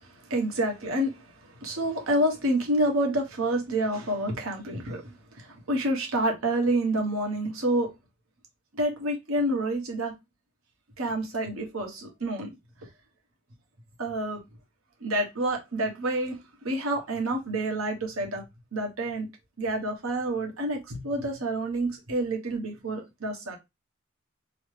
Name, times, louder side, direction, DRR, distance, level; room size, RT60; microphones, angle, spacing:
voice 1, 0.0-1.3 1.6-7.9 8.7-10.1 11.0-12.5 14.0-14.4 15.0-16.4 16.6-18.4 18.7-19.3 19.6-23.6, right 1 dB, 85° right, 1.1 m, -28 dB
3.0 x 2.0 x 3.2 m
head